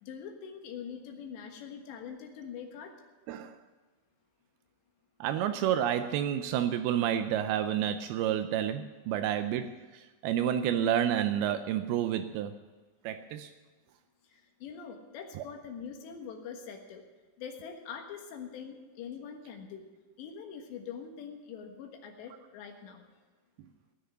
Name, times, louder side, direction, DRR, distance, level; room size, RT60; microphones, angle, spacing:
voice 1, 0.0-2.9 14.3-17.0 17.4-19.8 20.2-23.1, left 7 dB, 75° left, 3 dB, 3.6 m, -43 dB
voice 2, 3.3-3.6 5.2-12.5 13.0-13.5 15.4-15.5, right 10 dB, 90° right, 9 dB, 2.2 m, -30 dB
18.5 x 6.6 x 9.8 m, 1.3 s
omnidirectional pair, 5.2 m